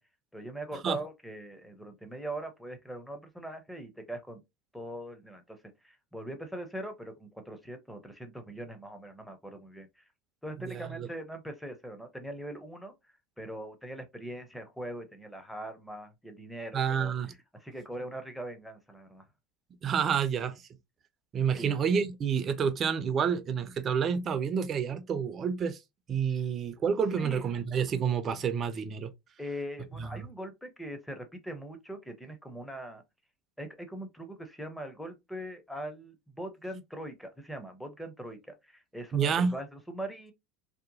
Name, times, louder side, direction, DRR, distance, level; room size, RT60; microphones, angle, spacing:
voice 1, 0.3-4.4 4.7-5.6 5.8-10.0 10.4-12.9 13.4-17.1 17.6-19.3 21.5-21.7 27.2-27.4 29.4-33.0 33.6-40.3, right 1 dB, ahead, 0.7 m, -41 dB
voice 2, 10.6-11.1 16.7-17.3 19.8-20.6 21.3-25.8 26.1-29.1 30.0-30.2 39.1-39.5, right 7 dB, 35° right, 0.5 m, -29 dB
2.8 x 2.1 x 2.6 m
supercardioid pair, 110°, 0 cm